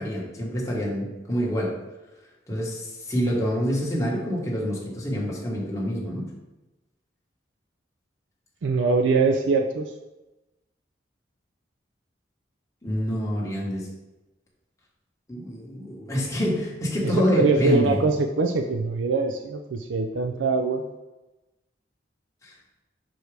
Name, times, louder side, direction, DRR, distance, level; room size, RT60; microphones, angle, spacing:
voice 1, 0.0-1.7 2.5-6.2 12.8-13.9 15.3-18.0 22.4-22.5, equal, 15° left, -4 dB, 1.4 m, -26 dB
voice 2, 8.6-9.9 17.0-20.8, right 3 dB, 90° right, 5 dB, 0.4 m, -23 dB
6.1 x 4.6 x 3.4 m, 1.1 s
head